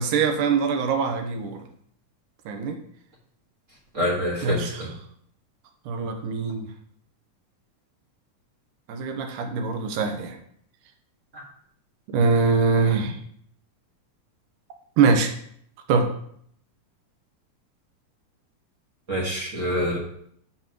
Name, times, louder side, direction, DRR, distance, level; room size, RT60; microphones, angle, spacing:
voice 1, 0.0-1.6 2.5-2.8 4.4-4.9 5.9-6.7 8.9-10.4 12.1-13.2 15.0-15.3 15.9-16.1, right 4 dB, 90° right, 5 dB, 2.5 m, -23 dB
voice 2, 3.9-4.9 11.3-11.4 19.1-20.0, equal, 35° right, -3 dB, 1.4 m, -26 dB
10.5 x 6.7 x 3.0 m, 0.66 s
omnidirectional pair, 3.6 m